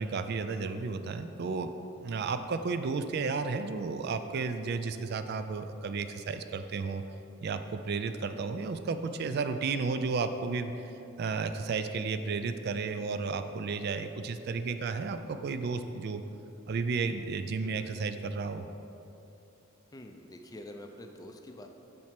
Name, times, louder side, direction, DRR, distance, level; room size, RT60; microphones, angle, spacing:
voice 1, 0.0-1.7 2.0-7.0 7.4-10.7 11.2-16.2 16.7-18.7, right 4 dB, 50° right, 9 dB, 0.3 m, -33 dB
voice 2, 17.6-17.9 19.9-21.7, left 1 dB, 15° left, 4 dB, 0.4 m, -47 dB
7.5 x 4.3 x 5.8 m, 2.9 s
head